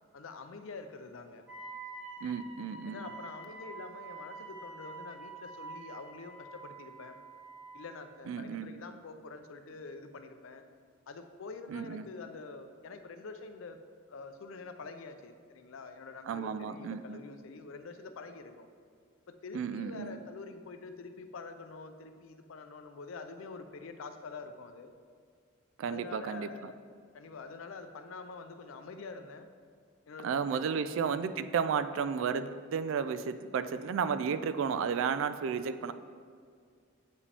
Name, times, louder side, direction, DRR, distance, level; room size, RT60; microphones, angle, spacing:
voice 1, 0.1-1.4 2.9-7.2 7.7-10.6 11.1-13.8 14.1-18.7 19.3-24.9 25.9-26.8 27.1-29.5 30.1-30.3 30.5-30.8, left 4 dB, 70° left, 8 dB, 0.5 m, -46 dB
Wind instrument woodwind instrument, 1.5-7.9, right 3 dB, 5° right, 1.3 m, -47 dB
voice 2, 2.2-3.1 8.3-8.7 11.7-12.1 16.2-17.2 19.5-20.2 25.8-26.7 30.2-35.9, right 6 dB, 65° right, 12 dB, 0.3 m, -33 dB
8.4 x 4.9 x 3.4 m, 2.1 s
head